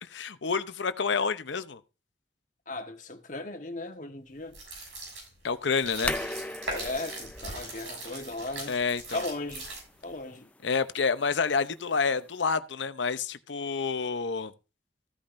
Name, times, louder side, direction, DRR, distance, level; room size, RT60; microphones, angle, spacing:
voice 1, 0.0-1.8 5.4-6.2 8.7-9.2 10.6-14.5, left 5 dB, 80° left, 0.7 m, -28 dB
voice 2, 2.7-4.6 6.7-8.8 9.1-9.7 10.0-10.5, left 2 dB, 45° left, 1.4 m, -37 dB
sound 1, 4.5-10.1, right 2 dB, 75° right, 7.1 m, -40 dB
sound 2, 5.8-12.5, left 2 dB, 5° left, 0.4 m, -41 dB
15.0 x 8.7 x 2.6 m
head